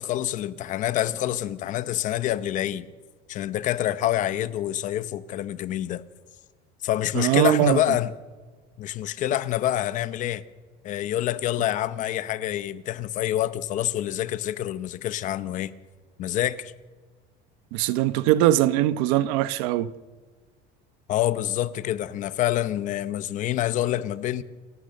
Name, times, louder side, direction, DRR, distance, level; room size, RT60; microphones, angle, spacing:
voice 1, 0.0-2.9 3.3-6.0 6.8-8.1 8.8-10.4 10.8-15.7 16.2-16.7 21.1-24.4, left 13 dB, 40° left, 0.8 m, -27 dB
voice 2, 7.1-7.8 17.7-19.9, right 14 dB, 80° right, 1.0 m, -21 dB
28.0 x 15.0 x 6.7 m
cardioid pair, 170°, 20 cm